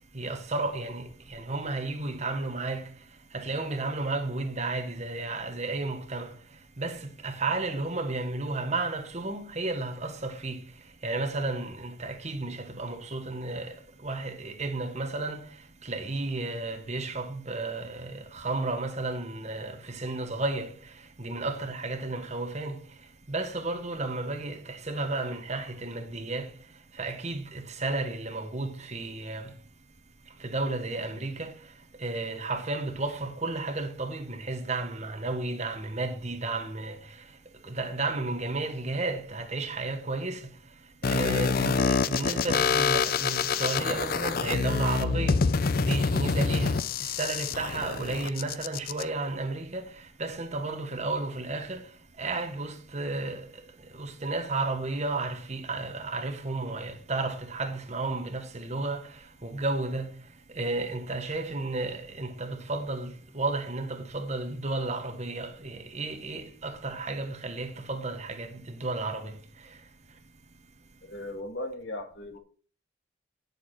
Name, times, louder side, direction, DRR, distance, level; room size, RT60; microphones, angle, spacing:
voice 1, 0.1-2.9 3.3-6.4 6.8-10.6 11.0-22.8 23.3-26.5 26.9-29.5 30.4-31.7 32.0-37.3 37.6-40.5 41.0-45.5 45.8-51.9 52.2-60.1 60.5-69.8, right 2 dB, 40° right, 1.4 m, -33 dB
sound 1, 41.0-49.0, left 5 dB, 50° left, 0.5 m, -27 dB
voice 2, 71.0-72.4, left 1 dB, 75° left, 1.8 m, -37 dB
9.9 x 7.1 x 4.3 m
head